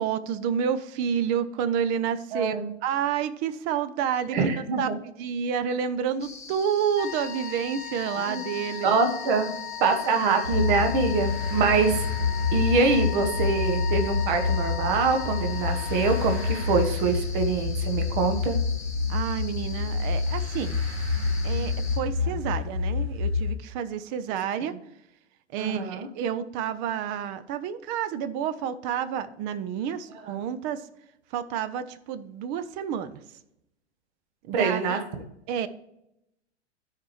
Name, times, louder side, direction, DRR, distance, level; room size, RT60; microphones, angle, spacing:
voice 1, 0.0-4.9 5.2-8.9 11.6-11.9 19.1-20.8 21.4-24.8 25.5-30.9 31.3-33.2 34.4-35.0 35.5-35.7, right 8 dB, 25° right, 12 dB, 0.5 m, -29 dB
voice 2, 2.3-2.7 4.3-5.0 8.2-8.4 8.8-9.5 9.8-12.0 12.5-18.6 24.6-24.7 25.6-26.1 30.3-30.4 34.5-35.2, right 4 dB, 45° right, 6 dB, 1.3 m, -25 dB
sound 1, 6.2-22.0, left 4 dB, 10° left, 1.6 m, -44 dB
sound 2, 6.9-16.9, left 13 dB, 25° left, 1.6 m, -38 dB
sound 3, 10.4-23.5, left 4 dB, 70° right, 1.9 m, -28 dB
13.0 x 4.9 x 3.2 m, 0.82 s
figure-of-eight pair, 100°, 33 cm